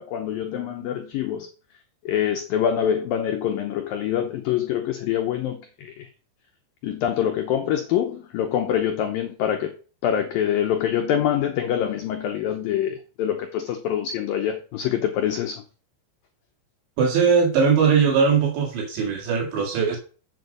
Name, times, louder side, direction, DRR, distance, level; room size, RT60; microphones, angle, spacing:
voice 1, 0.0-1.5 2.1-6.1 6.8-9.7 10.0-15.6, left 9 dB, 90° left, 2.0 m, -25 dB
voice 2, 17.0-20.0, right 6 dB, 75° right, 4.3 m, -20 dB
7.9 x 7.8 x 5.4 m
omnidirectional pair, 5.3 m